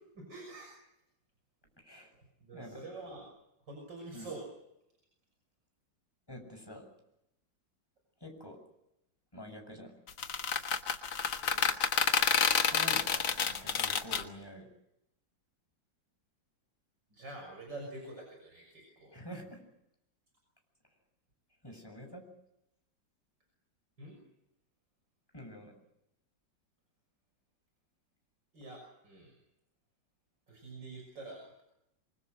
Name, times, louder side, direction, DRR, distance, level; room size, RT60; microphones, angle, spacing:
voice 1, 0.2-0.7 2.2-3.3 3.7-4.5 11.4-11.8 17.1-19.1 24.0-24.2 28.5-29.4 30.5-31.6, right 2 dB, 70° right, 2 dB, 6.9 m, -46 dB
voice 2, 1.8-2.1 2.5-2.8 4.1-4.3 6.3-6.9 8.2-8.6 9.3-9.9 12.7-14.7 19.1-19.6 21.6-22.3 25.3-25.7, left 1 dB, 10° left, 3 dB, 7.4 m, -47 dB
sound 1, 10.1-14.2, left 7 dB, 90° left, 2.3 m, -29 dB
26.5 x 25.5 x 6.4 m, 0.84 s
omnidirectional pair, 2.0 m